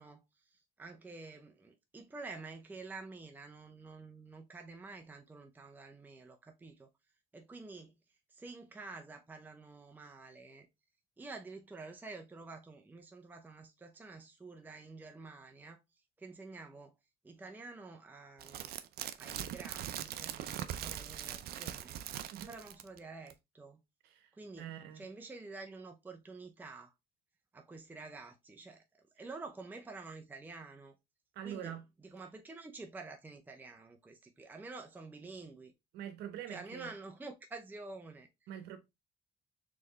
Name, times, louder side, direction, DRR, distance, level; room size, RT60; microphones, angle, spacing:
voice 1, 0.0-6.9 7.3-7.9 8.3-10.7 11.2-17.0 17.2-18.7 19.2-22.0 22.5-23.8 24.3-24.7 24.9-26.9 27.5-28.8 29.1-30.9 31.4-35.7 36.5-38.5, right 3 dB, 10° right, 0.6 m, -49 dB
sound 1, 18.4-23.0 23.3-23.4, right 11 dB, 65° right, 0.5 m, -41 dB
voice 2, 24.6-25.0 31.3-31.8 35.9-36.9 38.5-38.8, right 10 dB, 85° right, 0.9 m, -44 dB
4.3 x 3.3 x 3.0 m
cardioid pair, 110°, 17 cm